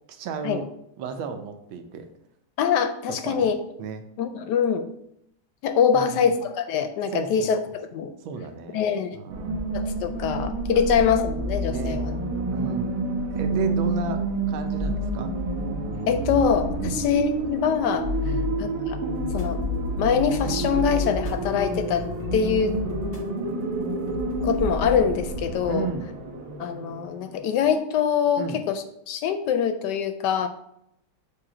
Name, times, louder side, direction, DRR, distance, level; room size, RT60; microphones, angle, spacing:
voice 1, 0.1-0.7 1.0-2.1 3.1-3.5 3.8-4.1 5.9-6.2 7.1-7.5 8.2-8.8 9.1-9.6 10.7-11.0 11.7-12.0 12.5-13.0 13.3-15.3 16.7-17.0 18.2-18.5 25.7-26.1 28.4-28.6, right 6 dB, 85° right, 7 dB, 1.5 m, -34 dB
voice 2, 2.6-3.6 4.2-4.9 5.6-8.1 8.7-9.2 9.7-12.2 13.5-13.8 16.1-18.1 18.6-19.0 19.3-19.6 20.0-22.0 22.3-22.8 24.4-25.9 26.6-30.5, left 7 dB, 75° left, 9 dB, 1.0 m, -24 dB
sound 1, 9.3-27.5, right 1 dB, 55° right, 1.5 m, -28 dB
sound 2, 19.1-24.9, right 1 dB, 15° left, 0.6 m, -37 dB
7.1 x 2.8 x 4.9 m, 0.75 s
omnidirectional pair, 2.2 m